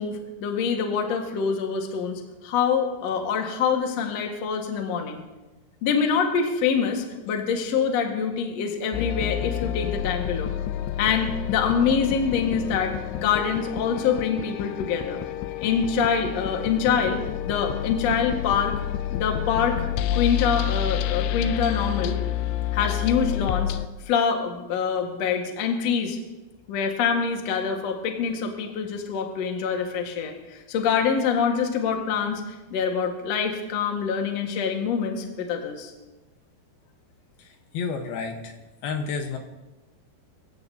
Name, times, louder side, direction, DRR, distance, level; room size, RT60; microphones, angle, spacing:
voice 1, 0.0-5.2 5.8-10.5 11.0-15.2 15.6-18.7 19.1-19.9 20.1-22.2 22.7-23.7 24.1-26.2 26.7-32.4 32.7-35.9, left 6 dB, 55° left, 2 dB, 2.1 m, -25 dB
sound 1, 8.9-23.9, left 12 dB, 90° left, 2.9 m, -29 dB
voice 2, 37.4-38.6 38.8-39.4, left 5 dB, 75° left, 4 dB, 2.8 m, -31 dB
24.5 x 15.0 x 2.8 m, 1.1 s
omnidirectional pair, 4.8 m